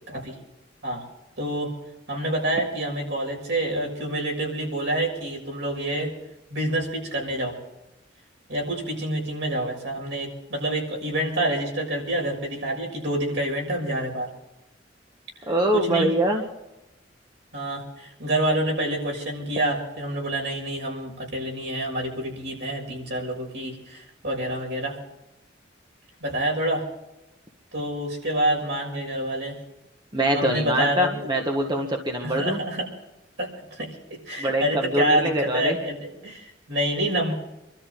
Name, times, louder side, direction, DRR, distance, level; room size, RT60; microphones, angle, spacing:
voice 1, 1.4-1.7 2.1-6.1 6.5-7.5 8.5-14.3 15.4-16.1 17.5-25.0 26.2-26.8 27.7-29.5 30.3-31.1 32.2-32.9 33.4-33.9 34.3-37.3, right 1 dB, 65° right, -1 dB, 6.5 m, -27 dB
voice 2, 15.5-16.4 30.1-32.6 34.4-35.8, right 1 dB, 25° right, 2 dB, 1.6 m, -24 dB
27.5 x 13.0 x 3.9 m, 0.94 s
head